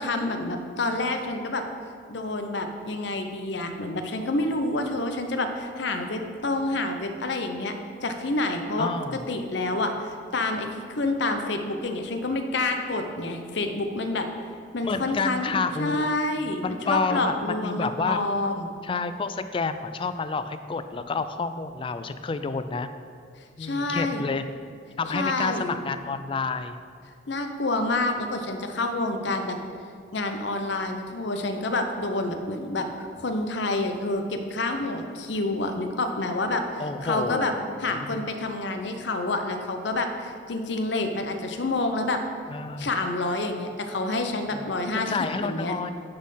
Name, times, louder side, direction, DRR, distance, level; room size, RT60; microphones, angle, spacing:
voice 1, 0.0-1.6 2.1-7.7 8.0-9.9 10.3-14.3 14.7-15.5 15.8-18.7 23.6-24.2 25.1-25.8 27.3-29.6 30.1-37.5 37.8-42.2 42.8-45.7, left 2 dB, 65° left, 5 dB, 0.7 m, -28 dB
voice 2, 8.8-9.2 14.8-16.1 16.6-18.2 18.8-22.9 23.6-24.4 25.0-26.8 36.8-38.2 42.5-42.9 44.5-44.7 44.9-45.9, left 4 dB, 25° left, 10 dB, 0.3 m, -29 dB
9.5 x 4.2 x 5.6 m, 2.2 s
head